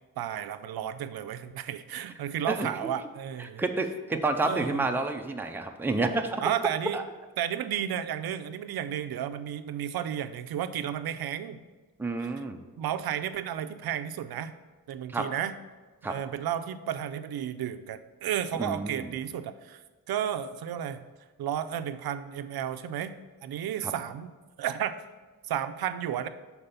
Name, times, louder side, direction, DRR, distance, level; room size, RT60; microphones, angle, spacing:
voice 1, 0.2-3.6 4.1-4.9 6.4-7.0 7.4-11.6 12.2-12.3 12.8-14.5 14.9-15.5 16.0-21.0 21.4-23.1 23.4-24.3 24.6-24.9 25.4-26.3, right 10 dB, 85° right, 11 dB, 0.5 m, -33 dB
voice 2, 3.4-6.4 6.9-7.0 12.0-12.6 15.1-15.3 16.0-16.1 18.6-19.1 23.8-23.9, right 2 dB, 5° right, 4 dB, 0.5 m, -29 dB
6.7 x 4.3 x 5.7 m, 1.3 s
wide cardioid pair, 140°, 36 cm